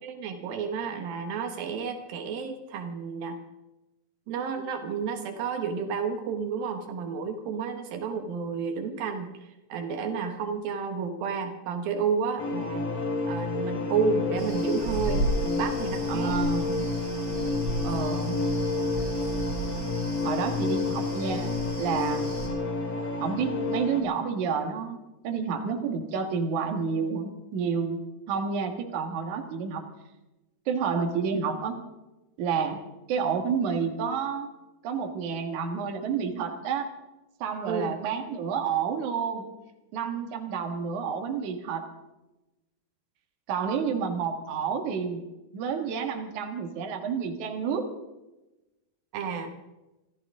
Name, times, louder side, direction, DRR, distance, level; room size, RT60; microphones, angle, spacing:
voice 1, 0.0-3.4 4.3-12.9 13.3-16.4 20.8-20.9 37.7-38.0 49.1-49.5, right 5 dB, 80° right, 5 dB, 3.0 m, -31 dB
sound 1, 12.4-24.0, left 3 dB, 65° left, 3.9 m, -29 dB
sound 2, 14.4-22.5, right 2 dB, 25° right, 7.5 m, -35 dB
voice 2, 16.1-16.7 17.8-18.4 20.2-22.3 23.2-29.8 30.7-31.8 32.4-32.8 33.1-34.5 34.8-36.9 37.4-39.5 39.9-41.9 43.5-45.2 45.5-47.9, right 6 dB, 60° right, 5 dB, 2.9 m, -30 dB
26.0 x 15.0 x 3.7 m, 1.0 s
omnidirectional pair, 4.1 m